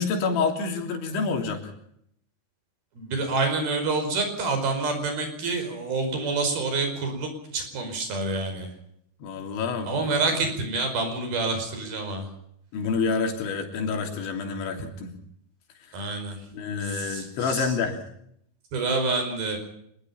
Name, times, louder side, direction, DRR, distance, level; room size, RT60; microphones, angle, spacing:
voice 1, 0.0-1.7 9.2-10.1 12.7-15.1 16.0-16.1 16.5-18.0, left 5 dB, 90° left, 4 dB, 5.5 m, -28 dB
voice 2, 3.0-8.7 9.8-12.2 15.9-16.3 17.1-17.2 17.6-17.7 18.7-19.6, right 3 dB, 55° right, 6 dB, 6.8 m, -27 dB
25.0 x 21.5 x 5.7 m, 0.71 s
omnidirectional pair, 5.1 m